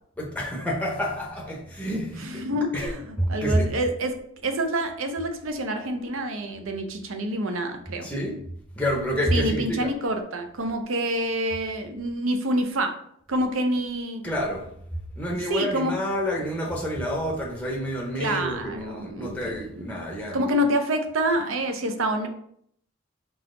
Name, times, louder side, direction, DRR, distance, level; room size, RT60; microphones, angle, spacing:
voice 1, 0.2-2.4 2.7-2.9 3.2-3.7 8.0-8.4 8.8-9.9 14.2-14.7 15.2-20.5, equal, 5° left, 0.6 m, -28 dB
voice 2, 2.2-8.1 9.3-13.0 13.3-14.2 15.5-16.0 18.2-19.8 20.3-22.3, right 1 dB, 75° right, 0.6 m, -27 dB
4.0 x 2.9 x 3.7 m
head